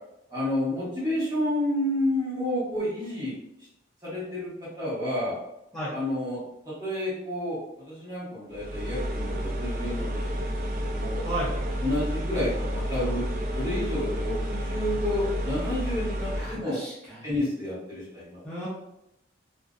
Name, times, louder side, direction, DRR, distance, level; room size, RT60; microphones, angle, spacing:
voice 1, 0.3-3.3 4.0-4.5 4.8-5.3 5.9-6.4 6.6-11.2 11.8-13.2 13.5-16.8 17.2-18.4, left 1 dB, 20° right, -9 dB, 1.0 m, -30 dB
sound 1, 8.5-16.6, equal, 45° right, 0.3 m, -30 dB
voice 2, 16.3-17.3 18.4-18.7, right 1 dB, ahead, -12 dB, 0.5 m, -34 dB
2.4 x 2.1 x 2.4 m, 0.84 s
head